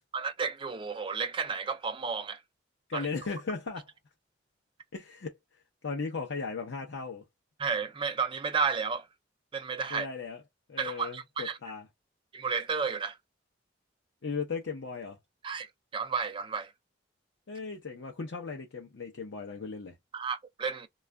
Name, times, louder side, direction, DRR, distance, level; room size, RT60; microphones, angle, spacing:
voice 1, 0.1-2.4 2.9-3.1 7.6-9.1 9.5-10.1 10.8-11.6 12.3-13.2 15.4-16.7 20.1-20.9, right 5 dB, 25° right, 0.3 m, -32 dB
voice 2, 2.9-3.8 4.9-5.3 5.8-7.2 9.9-10.4 10.7-11.8 14.2-15.2 17.5-19.9, left 4 dB, 85° left, 0.7 m, -36 dB
2.3 x 2.0 x 3.4 m
head